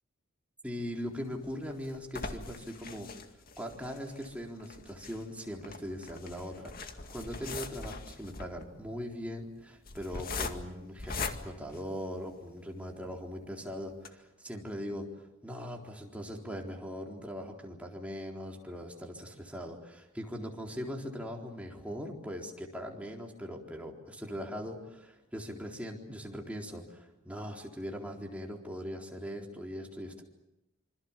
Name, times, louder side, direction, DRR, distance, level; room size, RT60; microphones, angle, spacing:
voice 1, 0.6-3.1 3.6-30.2, equal, 5° right, 0 dB, 4.0 m, -40 dB
sound 1, 1.1-12.5 13.1-13.2 13.5-13.6 13.9-14.1, left 4 dB, 45° left, 2.2 m, -42 dB
26.5 x 26.5 x 7.4 m, 0.89 s
head